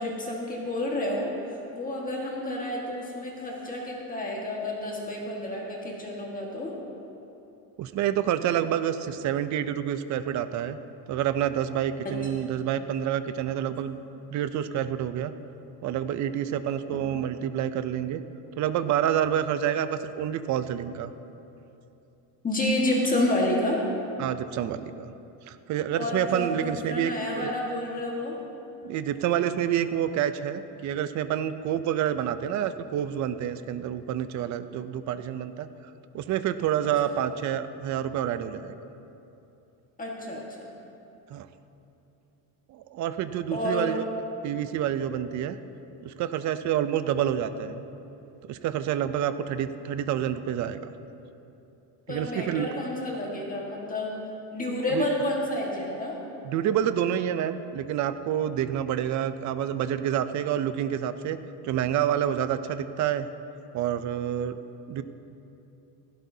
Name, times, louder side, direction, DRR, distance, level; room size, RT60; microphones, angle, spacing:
voice 1, 0.0-6.7 12.0-12.3 22.4-23.8 25.9-28.4 40.0-40.7 43.5-43.9 52.1-54.2 54.5-56.2, left 1 dB, 20° left, -2 dB, 1.6 m, -30 dB
voice 2, 7.8-10.8 11.1-14.0 14.3-15.3 15.8-18.2 18.6-21.1 24.2-25.1 25.5-27.1 27.4-27.5 28.8-35.7 36.1-38.8 41.3-41.5 42.7-44.0 44.4-45.6 46.0-47.8 48.5-50.9 52.1-52.7 54.9-55.1 56.4-61.4 61.6-63.3 63.7-64.6 64.9-65.0, right 10 dB, 40° right, 11 dB, 0.5 m, -28 dB
16.0 x 15.5 x 2.7 m, 2.8 s
cardioid pair, 150°, 44 cm